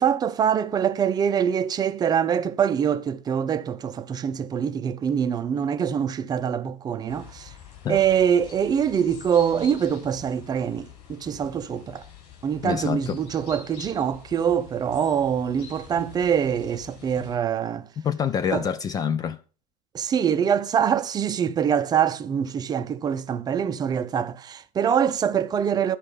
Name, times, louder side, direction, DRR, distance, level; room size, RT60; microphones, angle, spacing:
voice 1, 0.0-7.5 7.9-12.0 12.4-17.9 18.5-18.6 19.9-26.0, right 8 dB, 20° right, 0.7 m, -24 dB
sound 1, 7.1-17.4, left 8 dB, 45° left, 7.5 m, -46 dB
voice 2, 12.6-13.2 18.0-19.4, left 7 dB, 20° left, 0.4 m, -26 dB
12.0 x 5.1 x 7.2 m
figure-of-eight pair, 95°, 20 cm